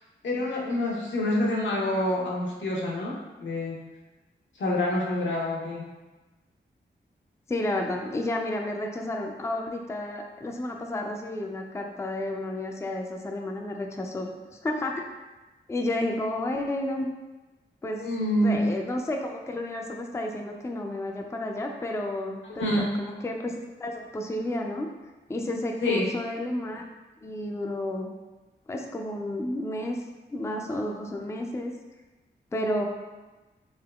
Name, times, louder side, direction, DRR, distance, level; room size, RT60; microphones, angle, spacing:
voice 1, 0.2-3.7 4.6-5.8 18.0-18.7 22.6-22.8 25.8-26.1, left 1 dB, 85° left, -4 dB, 0.7 m, -27 dB
voice 2, 7.5-14.3 14.6-15.1 15.7-17.1 17.8-18.0 18.4-24.9 25.3-26.8 27.2-28.1 28.7-30.0 30.3-31.7 32.5-32.8, left 1 dB, 15° left, 2 dB, 0.4 m, -31 dB
3.5 x 2.8 x 2.3 m, 1.2 s
cardioid pair, 50°, 19 cm